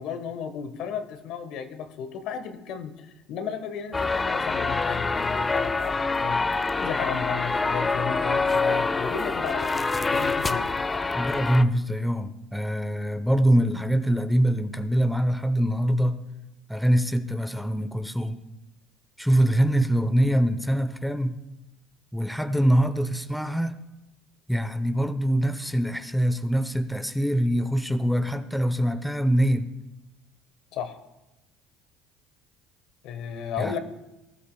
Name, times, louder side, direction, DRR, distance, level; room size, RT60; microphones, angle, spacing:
voice 1, 0.0-6.4 6.8-10.7 30.7-31.0 33.0-33.8, left 7 dB, 65° left, 8 dB, 1.2 m, -34 dB
sound 1, 3.9-11.6, left 3 dB, 20° left, 0.6 m, -26 dB
voice 2, 11.1-16.2 16.7-18.4 19.2-21.4 22.1-23.8 24.5-29.7 33.6-33.8, equal, ahead, 9 dB, 0.9 m, -24 dB
20.0 x 11.5 x 2.3 m, 0.97 s
hypercardioid pair, 75°, 0 cm